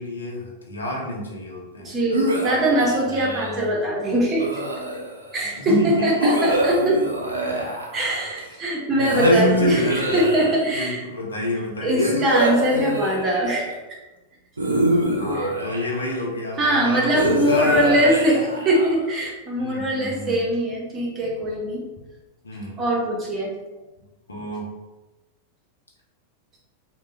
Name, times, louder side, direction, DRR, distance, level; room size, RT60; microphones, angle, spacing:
voice 1, 0.0-1.9 3.2-3.7 5.5-6.3 8.4-10.4 10.7-12.3 15.2-18.7 19.6-20.5 22.4-22.9 24.3-24.7, left 1 dB, 75° left, -2 dB, 0.8 m, -30 dB
voice 2, 1.8-4.5 5.3-7.0 7.9-11.0 11.8-13.8 15.4-15.5 16.6-21.8 22.8-23.5, equal, 25° right, -3 dB, 1.0 m, -22 dB
sound 1, 2.1-3.6 4.4-5.3 6.2-8.4 9.0-10.9 12.0-13.7 14.6-16.2 17.1-19.1, right 1 dB, 75° right, 0.5 m, -24 dB
3.3 x 2.2 x 3.4 m, 1.1 s
figure-of-eight pair, 90°, 0 cm